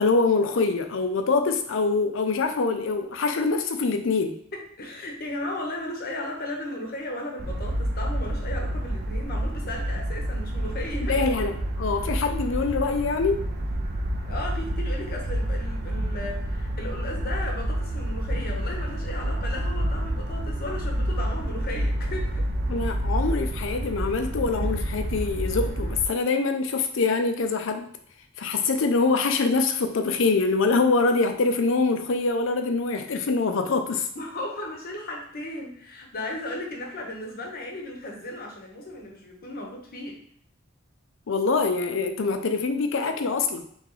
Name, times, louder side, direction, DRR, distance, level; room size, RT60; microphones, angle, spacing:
voice 1, 0.0-4.4 11.1-13.4 22.7-27.9 28.4-34.1 41.3-43.6, left 4 dB, 70° left, 6 dB, 0.5 m, -24 dB
voice 2, 4.5-11.3 14.2-22.5 34.1-40.2, left 1 dB, 50° left, 0 dB, 0.9 m, -35 dB
sound 1, 7.4-26.0, right 1 dB, 50° right, 0.6 m, -29 dB
3.5 x 3.2 x 3.7 m, 0.65 s
head